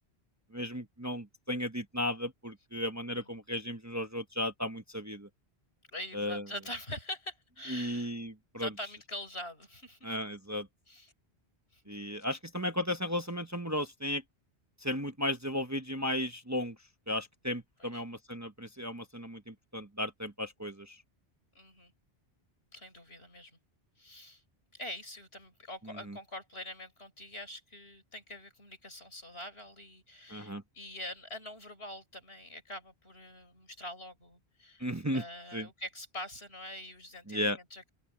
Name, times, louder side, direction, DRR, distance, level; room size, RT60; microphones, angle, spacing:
voice 1, 0.5-5.3 6.1-6.4 7.7-8.7 10.0-10.7 11.9-14.2 14.8-16.8 17.1-21.0 26.1-26.2 30.3-30.6 34.8-35.2 35.5-35.7 37.3-37.6, left 1 dB, 15° right, 1.0 m, -35 dB
voice 2, 5.9-8.1 8.5-10.1 10.9-11.1 11.7-11.8 12.2-12.4 17.8-18.0 21.6-21.9 22.7-23.6 24.0-24.4 24.7-34.9 35.1-37.9, left 1 dB, 85° left, 7.3 m, -44 dB
open air
omnidirectional pair, 1.0 m